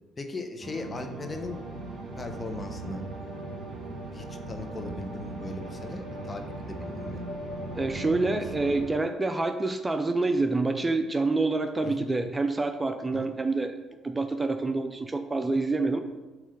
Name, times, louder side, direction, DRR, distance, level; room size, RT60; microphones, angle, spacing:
voice 1, 0.2-1.6 2.2-3.0 4.1-7.2 11.8-12.1 13.1-13.3, left 2 dB, 30° left, 5 dB, 0.9 m, -38 dB
sound 1, 0.6-8.9, right 2 dB, 50° right, 1.5 m, -38 dB
voice 2, 7.8-13.8 14.0-16.0, right 3 dB, 20° right, 8 dB, 0.5 m, -27 dB
7.5 x 3.1 x 5.4 m, 1.2 s
hypercardioid pair, 50°, 0 cm